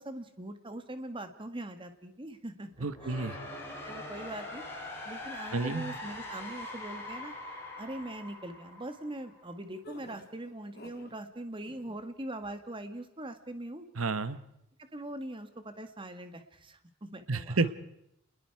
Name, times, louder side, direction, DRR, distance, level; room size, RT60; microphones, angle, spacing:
voice 1, 0.0-3.2 3.8-4.6 5.0-7.3 7.8-13.8 14.8-17.7, right 1 dB, 25° right, 8 dB, 1.7 m, -42 dB
sound 1, 2.7-9.6, left 1 dB, 10° left, 7.6 m, -42 dB
voice 2, 2.8-3.4 5.5-5.9 14.0-14.4 17.3-17.7, right 3 dB, 90° right, 13 dB, 1.2 m, -30 dB
sound 2, 9.8-11.2 11.5-12.0, left 1 dB, 50° left, 3.2 m, -51 dB
29.0 x 20.5 x 4.7 m, 0.78 s
head